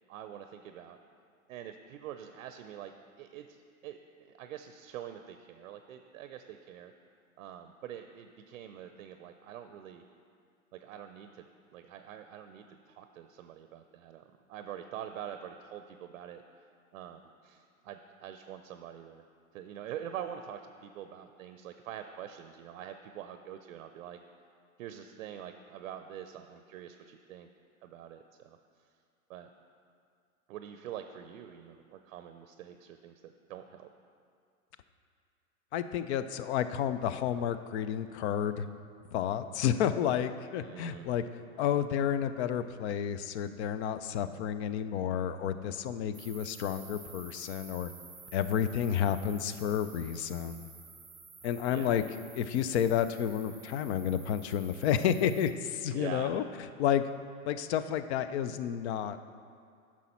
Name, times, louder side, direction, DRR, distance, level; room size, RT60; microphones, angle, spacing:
voice 1, 0.1-1.0 1.5-2.9 3.2-3.6 3.8-6.9 7.4-10.0 10.7-11.5 11.7-16.4 16.9-19.2 19.5-24.2 24.8-27.5 27.8-28.6 29.3-29.5 30.5-33.9 40.6-41.1 51.7-52.0 55.9-56.3, right 10 dB, 60° right, 8 dB, 0.6 m, -45 dB
voice 2, 35.7-38.7 39.1-41.2 41.6-47.9 48.3-50.7 51.4-52.0 52.4-56.4 56.8-57.1 57.5-59.3, left 9 dB, 50° left, 12 dB, 0.5 m, -31 dB
sound 1, 46.1-55.5, right 4 dB, 5° right, 0.5 m, -52 dB
9.9 x 6.1 x 4.3 m, 2.3 s
hypercardioid pair, 110°, 43 cm